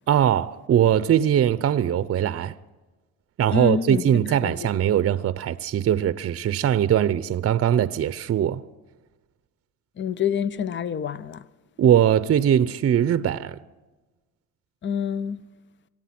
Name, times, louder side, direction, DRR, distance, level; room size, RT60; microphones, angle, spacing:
voice 1, 0.1-2.5 3.4-8.6 11.8-13.6, right 10 dB, 50° right, 0.7 m, -21 dB
voice 2, 3.5-4.7 10.0-11.4 14.8-15.4, left 7 dB, 40° left, 0.7 m, -27 dB
25.0 x 9.1 x 6.0 m
cardioid pair, 90°, 30 cm